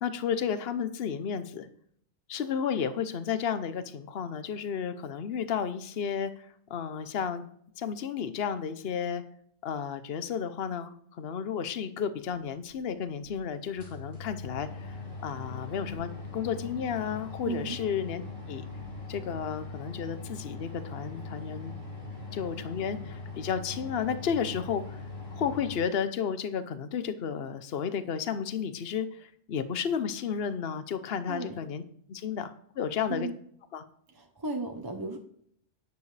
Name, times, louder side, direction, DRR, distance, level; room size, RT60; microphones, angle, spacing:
voice 1, 0.0-1.7 2.3-6.3 6.7-7.4 7.8-9.2 9.6-18.2 18.5-18.6 19.1-21.7 22.3-25.0 25.3-31.8 32.1-33.3 33.7-33.8, left 7 dB, 60° left, 11 dB, 1.0 m, -32 dB
sound 1, 12.6-12.7 13.2-13.3 13.6-25.8, left 3 dB, 85° left, 3.5 m, -41 dB
voice 2, 17.4-17.8 31.3-31.6 33.1-33.3 34.1-35.2, right 3 dB, 20° right, 3 dB, 0.8 m, -35 dB
11.5 x 9.6 x 3.3 m, 0.65 s
omnidirectional pair, 1.2 m